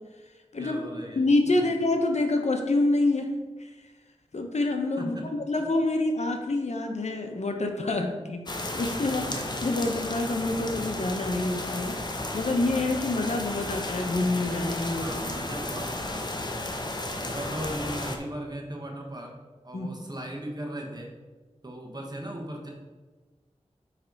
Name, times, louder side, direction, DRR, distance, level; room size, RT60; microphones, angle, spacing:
voice 1, 0.6-1.7 5.0-5.3 9.0-9.5 15.0-16.6 17.2-19.3 19.6-21.1 21.6-22.7, right 1 dB, 35° right, 0 dB, 1.3 m, -38 dB
voice 2, 1.2-3.3 3.6-3.7 4.3-5.2 5.5-9.3 9.6-12.0 12.3-15.1 19.7-19.9, left 2 dB, 70° left, 4 dB, 0.8 m, -27 dB
sound 1, 8.5-18.2, left 1 dB, 35° left, 0.8 m, -33 dB
9.3 x 3.3 x 4.0 m, 1.3 s
wide cardioid pair, 50°, 12 cm